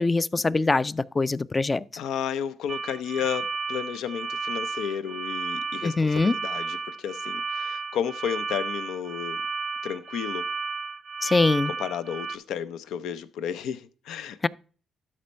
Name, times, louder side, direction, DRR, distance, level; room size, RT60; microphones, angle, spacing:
voice 1, 0.0-1.8 5.8-6.3 11.2-11.7, left 3 dB, 25° left, 0.4 m, -23 dB
voice 2, 2.0-9.4 9.8-10.5 11.6-14.5, left 8 dB, 85° left, 0.6 m, -32 dB
sound 1, 2.7-12.4, right 4 dB, 35° right, 0.5 m, -33 dB
12.5 x 4.4 x 4.4 m
cardioid pair, 90°, 0 cm